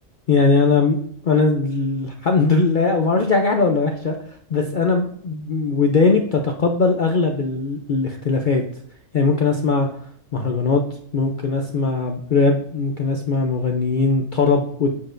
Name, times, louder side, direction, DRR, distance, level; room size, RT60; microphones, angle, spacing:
voice 1, 0.3-1.0 1.2-4.2 4.5-8.6 9.1-9.9 10.3-10.8 11.1-14.9, left 4 dB, 50° left, 3 dB, 0.6 m, -19 dB
7.3 x 6.3 x 2.5 m, 0.62 s
omnidirectional pair, 1.4 m